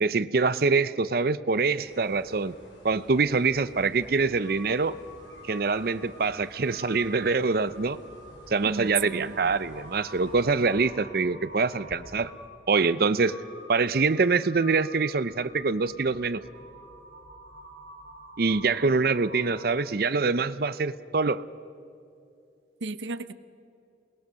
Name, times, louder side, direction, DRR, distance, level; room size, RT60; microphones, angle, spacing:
voice 1, 0.0-2.5 2.8-5.0 5.4-8.0 8.5-12.3 12.7-13.4 13.7-16.4 18.4-21.4, right 4 dB, 55° right, 15 dB, 0.6 m, -25 dB
sound 1, 1.8-10.7, equal, 85° left, 5.4 m, -52 dB
Crow, 4.4-19.9, equal, 65° left, 6.6 m, -48 dB
voice 2, 8.7-9.5 22.8-23.3, right 5 dB, 85° right, 13 dB, 0.8 m, -33 dB
28.0 x 20.5 x 6.4 m, 2.6 s
head